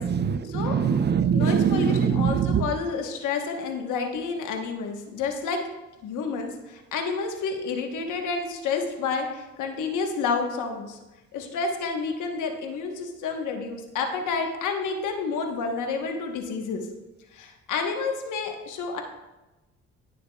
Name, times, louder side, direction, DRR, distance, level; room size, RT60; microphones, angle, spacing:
voice 1, 0.0-2.7, right 7 dB, 35° right, 11 dB, 0.5 m, -23 dB
voice 2, 1.3-5.6 6.0-11.0 11.3-16.8 17.3-19.0, left 5 dB, 80° left, 4 dB, 1.1 m, -29 dB
11.5 x 6.5 x 2.3 m, 1.1 s
cardioid pair, 90°, 30 cm